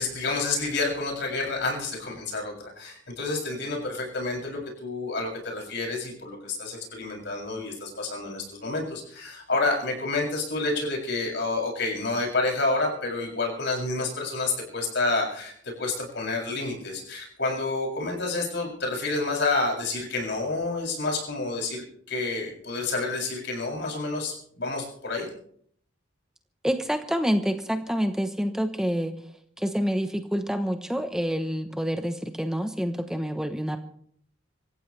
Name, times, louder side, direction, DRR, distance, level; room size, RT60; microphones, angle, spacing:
voice 1, 0.0-25.3, left 3 dB, 60° left, 0 dB, 7.1 m, -29 dB
voice 2, 26.6-29.1 29.6-33.8, equal, 5° right, 6 dB, 1.0 m, -27 dB
26.5 x 15.0 x 3.3 m, 0.63 s
head